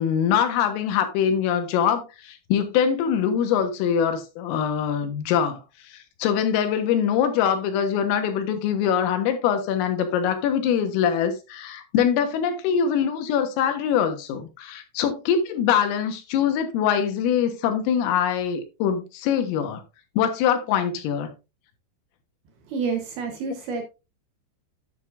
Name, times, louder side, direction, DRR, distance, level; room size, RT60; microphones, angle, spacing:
voice 1, 0.0-5.6 5.9-19.8 20.2-21.3, left 8 dB, 90° left, 4.0 m, -23 dB
voice 2, 22.7-23.8, right 5 dB, 70° right, 2.5 m, -28 dB
10.0 x 9.0 x 2.6 m
omnidirectional pair, 5.7 m